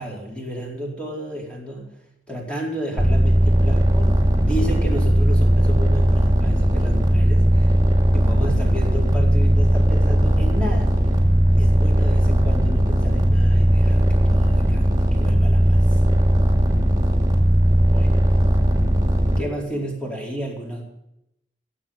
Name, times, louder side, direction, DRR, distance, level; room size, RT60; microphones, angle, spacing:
voice 1, 0.0-2.0 2.3-7.7 8.1-10.9 11.6-14.8 15.1-16.0 17.9-18.2 19.4-20.9, right 1 dB, 5° left, -2 dB, 4.6 m, -32 dB
sound 1, 3.0-19.4, equal, 25° right, 2.9 m, -18 dB
16.0 x 8.4 x 9.6 m, 0.82 s
head